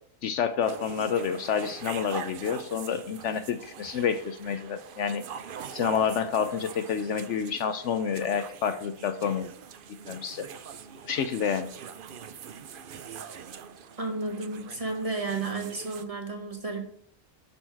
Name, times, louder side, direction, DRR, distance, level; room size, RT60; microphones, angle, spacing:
voice 1, 0.2-5.2 5.7-9.5 10.1-10.5 11.0-11.7, left 7 dB, 70° left, 9 dB, 0.9 m, -29 dB
sound 1, 0.6-16.0, right 7 dB, 55° right, 0.6 m, -43 dB
voice 2, 14.0-16.9, right 3 dB, 25° right, 1 dB, 1.5 m, -32 dB
10.0 x 4.4 x 4.5 m, 0.63 s
omnidirectional pair, 1.4 m